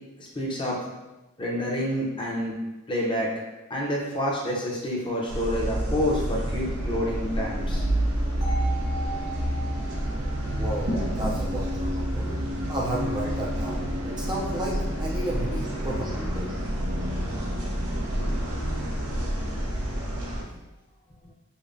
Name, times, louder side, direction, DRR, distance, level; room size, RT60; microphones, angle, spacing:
voice 1, 0.4-0.8 1.4-2.5 2.9-3.3 3.7-7.8 9.9-10.0 12.3-12.4 18.7-18.8 19.7-19.8 20.5-20.6, equal, 20° left, -3 dB, 0.6 m, -28 dB
sound 1, 5.3-20.4, right 1 dB, 90° right, 0.7 m, -29 dB
sound 2, 6.6-19.6, left 2 dB, 55° right, 1.2 m, -40 dB
sound 3, 8.4-12.4, right 2 dB, 85° left, 1.2 m, -40 dB
voice 2, 10.5-12.4 12.7-16.5, right 1 dB, 20° right, -5 dB, 0.4 m, -33 dB
5.1 x 2.1 x 2.5 m, 1.1 s
head